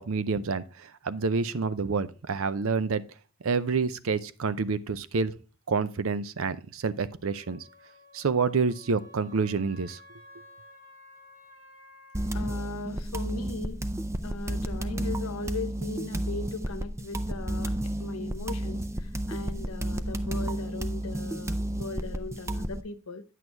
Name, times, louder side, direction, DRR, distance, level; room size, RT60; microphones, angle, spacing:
voice 1, 0.0-3.0 3.4-5.3 5.7-7.6 8.1-10.0, right 4 dB, 70° right, 0.5 m, -28 dB
Wind instrument woodwind instrument, 7.2-12.4, left 2 dB, 30° right, 4.6 m, -53 dB
sound 1, 12.1-22.8, right 1 dB, 15° right, 0.5 m, -32 dB
voice 2, 12.3-13.8 14.2-23.2, left 3 dB, 80° left, 0.9 m, -39 dB
9.2 x 6.2 x 3.3 m
head